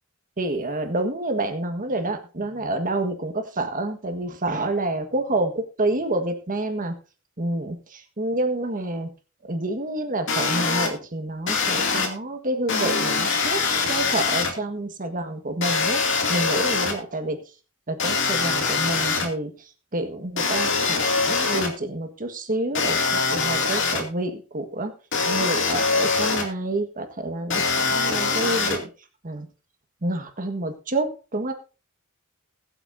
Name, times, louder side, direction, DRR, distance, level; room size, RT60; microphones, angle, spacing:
voice 1, 0.4-6.9 7.4-7.8 8.2-9.1 9.5-16.0 16.3-17.4 17.9-19.5 19.9-24.9 25.3-28.9 29.2-29.5 30.0-31.5, right 2 dB, 40° right, 6 dB, 1.6 m, -28 dB
sound 1, 10.3-10.9 11.5-12.1 12.7-14.5 15.6-16.9 18.0-19.3 20.4-21.7 22.7-24.0 25.1-26.4 27.5-28.8, left 4 dB, 60° left, 2.6 m, -23 dB
21.0 x 8.1 x 2.7 m, 0.34 s
head